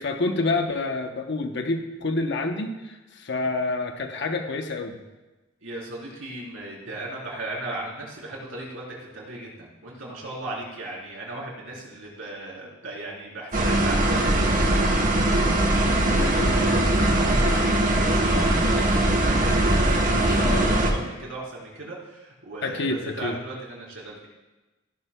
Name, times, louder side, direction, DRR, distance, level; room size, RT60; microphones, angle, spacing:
voice 1, 0.0-5.0 15.8-18.0 20.1-20.8 22.6-23.4, left 2 dB, 60° left, 4 dB, 0.8 m, -29 dB
voice 2, 5.6-15.4 17.5-24.3, right 2 dB, 70° right, -4 dB, 3.8 m, -37 dB
sound 1, 13.5-20.9, right 1 dB, 40° right, 1.3 m, -21 dB
15.5 x 11.0 x 2.2 m, 1.1 s
head